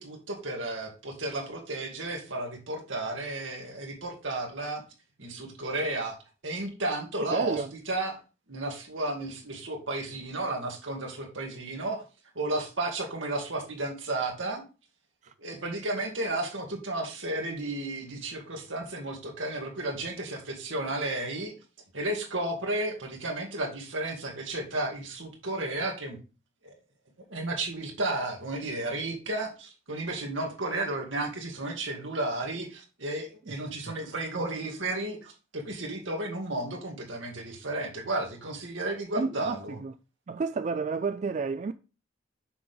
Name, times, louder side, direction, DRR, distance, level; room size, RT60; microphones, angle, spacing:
voice 1, 0.0-4.8 5.2-6.2 6.4-8.2 8.5-12.0 12.4-14.6 15.4-21.5 21.9-26.2 26.6-26.7 27.3-39.8, right 2 dB, 80° right, 2.2 m, -33 dB
voice 2, 7.3-7.7 15.2-15.3 33.5-33.6 33.8-33.9 39.2-39.9 40.3-41.7, right 4 dB, 35° right, 0.3 m, -31 dB
6.9 x 6.0 x 3.5 m
head